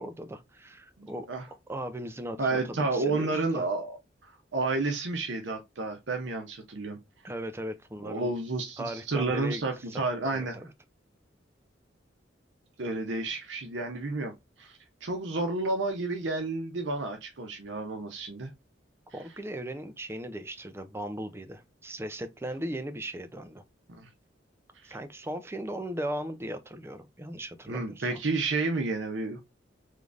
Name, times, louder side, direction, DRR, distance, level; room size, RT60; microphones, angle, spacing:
voice 1, 0.0-1.3 1.7-3.7 7.2-8.3 8.8-9.6 9.9-10.7 19.1-23.6 24.8-28.2, right 1 dB, 15° right, 0.5 m, -38 dB
voice 2, 1.0-1.5 2.4-4.0 4.5-7.0 8.0-10.6 12.8-18.5 24.0-24.1 24.8-25.0 27.7-29.4, right 3 dB, 75° right, 0.7 m, -31 dB
3.7 x 3.2 x 2.5 m
head